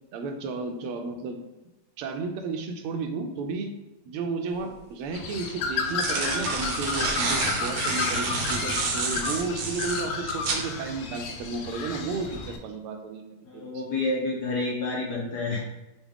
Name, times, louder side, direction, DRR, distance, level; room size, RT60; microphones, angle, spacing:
voice 1, 0.1-1.4 2.0-3.7 4.1-13.8, right 4 dB, 85° right, 4 dB, 1.5 m, -33 dB
sound 1, 4.6-4.7 5.7-10.7, right 4 dB, 65° right, 1.0 m, -29 dB
Bird, 5.1-12.6, left 5 dB, 90° left, 1.6 m, -32 dB
voice 2, 13.5-15.6, left 2 dB, 65° left, -3 dB, 1.0 m, -29 dB
5.9 x 2.3 x 3.4 m, 1.0 s
omnidirectional pair, 2.4 m